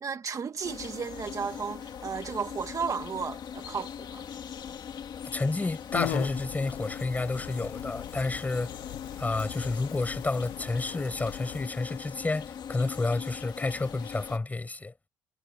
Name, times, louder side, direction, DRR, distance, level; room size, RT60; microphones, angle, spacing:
voice 1, 0.0-4.2, right 6 dB, 35° right, 1.4 m, -34 dB
sound 1, 0.6-14.4, left 8 dB, 50° left, 2.4 m, -41 dB
voice 2, 5.3-8.7 9.2-14.9, left 3 dB, 15° left, 5.4 m, -30 dB
sound 2, 5.9-11.6, left 16 dB, 90° left, 1.5 m, -39 dB
cardioid pair, 110°, 9 cm